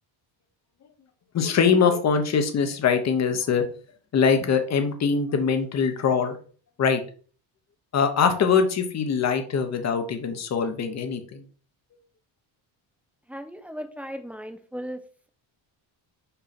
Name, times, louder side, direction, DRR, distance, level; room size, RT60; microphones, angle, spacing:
voice 1, 1.3-3.7 4.1-6.4 6.8-7.0 7.9-11.4, left 6 dB, 35° left, 7 dB, 1.1 m, -23 dB
voice 2, 13.3-15.0, equal, 5° right, 7 dB, 0.6 m, -36 dB
5.6 x 5.4 x 4.3 m, 0.42 s
cardioid pair, 170°, 45 cm